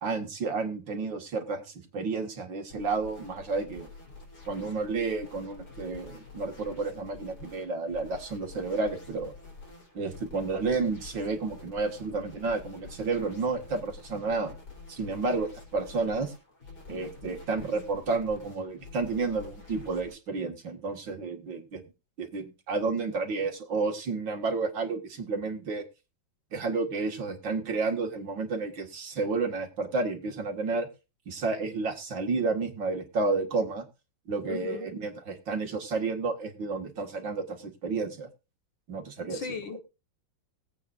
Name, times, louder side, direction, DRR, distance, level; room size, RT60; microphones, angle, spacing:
voice 1, 0.0-3.9 4.5-9.3 9.9-14.5 14.9-16.3 16.9-21.8 22.2-25.8 26.5-30.9 31.3-33.9 34.3-38.3 38.9-39.5, right 4 dB, 75° right, 4 dB, 2.8 m, -31 dB
sound 1, 2.7-20.2, left 3 dB, 60° left, 4.6 m, -48 dB
voice 2, 34.5-34.9 39.3-39.8, left 6 dB, 85° left, 8 dB, 2.4 m, -37 dB
20.0 x 8.6 x 2.6 m, 0.29 s
omnidirectional pair, 2.0 m